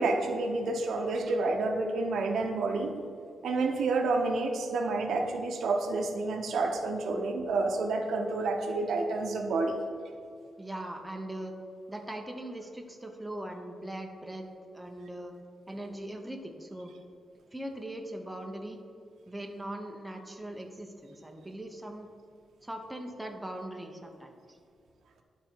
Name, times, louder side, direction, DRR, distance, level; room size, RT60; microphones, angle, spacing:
voice 1, 0.0-2.9 3.4-9.8, right 3 dB, 85° right, 4 dB, 0.8 m, -29 dB
voice 2, 10.6-11.5 11.9-14.4 14.7-15.3 15.7-16.9 17.5-18.8 19.3-22.1 22.6-24.6, right 1 dB, 5° right, 2 dB, 0.7 m, -40 dB
11.0 x 4.0 x 4.5 m, 2.3 s
wide cardioid pair, 155°, 0 cm